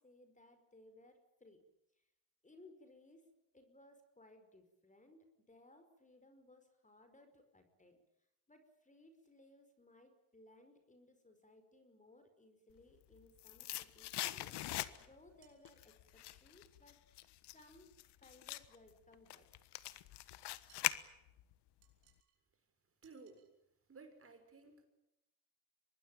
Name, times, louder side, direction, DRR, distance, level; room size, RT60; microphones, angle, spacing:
voice 1, 0.0-1.6 1.9-2.1 2.4-8.0 8.5-17.3 17.5-19.5, left 1 dB, 20° left, 8 dB, 5.1 m, -63 dB
sound 1, 12.9-15.3 15.7-21.5 21.8-21.9, left 15 dB, 75° left, 1.4 m, -43 dB
sound 2, 15.4-15.9 20.7-21.0 21.8-22.4 23.0-23.5, right 10 dB, 80° right, 6.3 m, -71 dB
voice 2, 23.0-23.4 23.9-24.8, right 4 dB, 35° right, 6 dB, 6.4 m, -56 dB
24.5 x 20.0 x 9.0 m, 0.89 s
cardioid pair, 90°, 40 cm